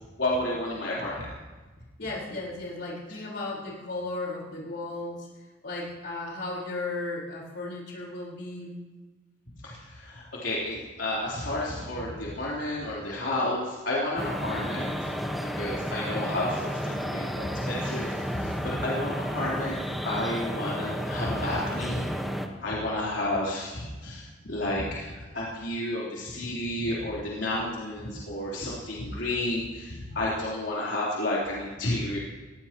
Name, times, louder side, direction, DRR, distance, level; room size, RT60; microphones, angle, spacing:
voice 1, 0.2-1.3 9.6-22.1 22.6-32.2, left 1 dB, 80° left, -6 dB, 3.7 m, -31 dB
voice 2, 2.0-5.3 5.6-8.8, left 2 dB, 65° left, -3 dB, 4.4 m, -35 dB
sound 1, 14.2-22.5, equal, ahead, 1.2 m, -32 dB
21.0 x 16.5 x 3.0 m, 1.3 s
head